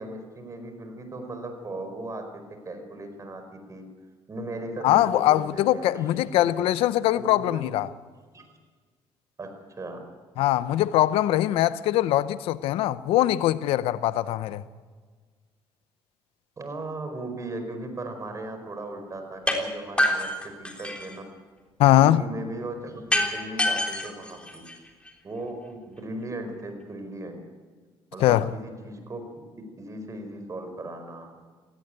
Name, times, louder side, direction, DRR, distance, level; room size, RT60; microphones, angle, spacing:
voice 1, 0.0-2.3 2.6-3.8 4.3-6.6 7.1-7.7 8.3-8.4 9.4-10.0 16.6-20.3 20.6-21.2 22.0-24.6 25.2-27.4 28.1-29.2 29.8-31.4, right 2 dB, 35° right, 4.8 m, -37 dB
voice 2, 4.8-7.9 10.4-14.6 21.8-22.2 28.2-28.5, left 14 dB, 80° left, 0.7 m, -22 dB
sound 1, 19.5-19.6 20.0-21.2 23.1-25.1, left 1 dB, 10° left, 3.6 m, -26 dB
17.0 x 17.0 x 9.0 m
cardioid pair, 80°, 10 cm